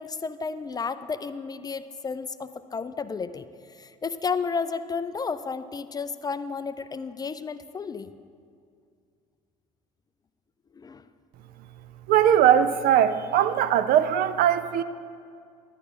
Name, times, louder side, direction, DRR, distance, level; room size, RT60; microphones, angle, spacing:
voice 1, 0.0-8.1 10.7-11.1, left 5 dB, 20° left, 13 dB, 0.4 m, -32 dB
voice 2, 12.1-14.8, right 10 dB, 55° right, 13 dB, 0.5 m, -20 dB
11.5 x 9.7 x 3.7 m, 2.3 s
hypercardioid pair, 60°, 18 cm